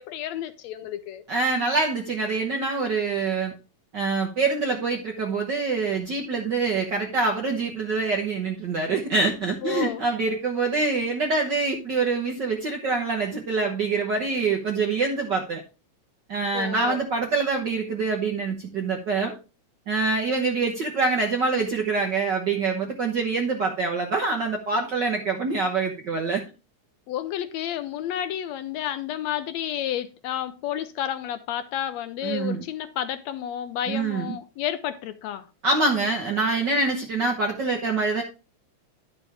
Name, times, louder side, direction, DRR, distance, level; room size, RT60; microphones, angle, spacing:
voice 1, 0.0-1.2 9.6-10.0 16.5-17.0 27.1-35.5, left 11 dB, 80° left, 1.7 m, -31 dB
voice 2, 1.3-3.5 3.9-15.6 16.3-19.3 19.9-26.4 32.2-32.6 33.9-34.3 35.6-38.2, right 3 dB, 60° right, 1.1 m, -25 dB
11.0 x 6.1 x 3.5 m
omnidirectional pair, 3.4 m